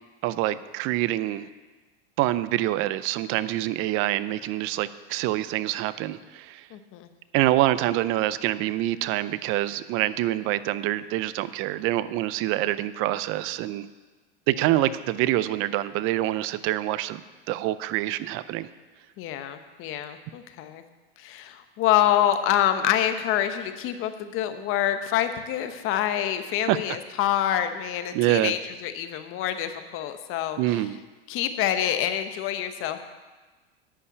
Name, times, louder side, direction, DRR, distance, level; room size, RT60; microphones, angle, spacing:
voice 1, 0.2-1.5 2.2-6.7 7.3-13.9 14.5-18.7 26.7-26.8 28.1-28.5 30.6-31.0, right 15 dB, 45° right, 15 dB, 0.5 m, -26 dB
voice 2, 6.7-7.1 19.2-20.8 21.2-30.8 31.3-33.0, left 11 dB, 45° left, 9 dB, 1.1 m, -26 dB
11.5 x 5.5 x 8.5 m, 1.3 s
hypercardioid pair, 115°, 31 cm